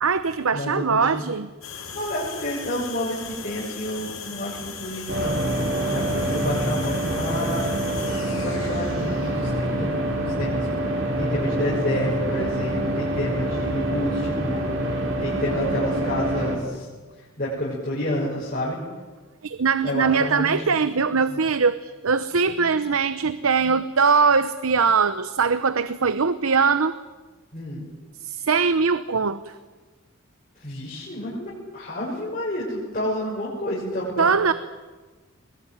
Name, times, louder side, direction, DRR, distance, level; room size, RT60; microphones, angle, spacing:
voice 1, 0.0-1.5 19.4-27.0 28.2-29.5 34.2-34.5, right 5 dB, 85° right, 13 dB, 0.8 m, -21 dB
voice 2, 0.5-1.2 1.9-5.4 5.9-7.7 8.4-10.7 11.2-14.7 15.2-16.9 17.4-18.8 19.8-20.8 21.3-21.4 27.5-27.8 30.6-34.3, equal, 40° left, -6 dB, 6.2 m, -29 dB
sound 1, 1.6-11.4, left 6 dB, 80° left, 5.6 m, -39 dB
sound 2, 5.1-16.6, right 1 dB, 60° right, 5.1 m, -26 dB
22.5 x 21.0 x 9.4 m, 1.3 s
head